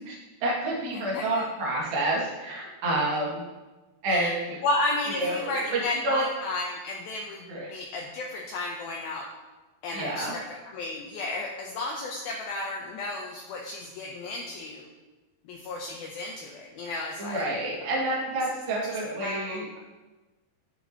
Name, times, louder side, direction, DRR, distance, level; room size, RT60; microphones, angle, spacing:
voice 1, 0.1-3.4 4.0-4.6 5.2-6.2 7.5-7.7 9.9-10.3 17.2-19.7, right 1 dB, 55° right, -4 dB, 3.9 m, -29 dB
voice 2, 0.9-1.4 4.1-4.3 4.6-9.3 9.8-14.9 15.4-17.4 19.2-19.7, left 2 dB, 80° left, -1 dB, 2.2 m, -33 dB
11.5 x 10.0 x 3.0 m, 1.2 s
omnidirectional pair, 5.2 m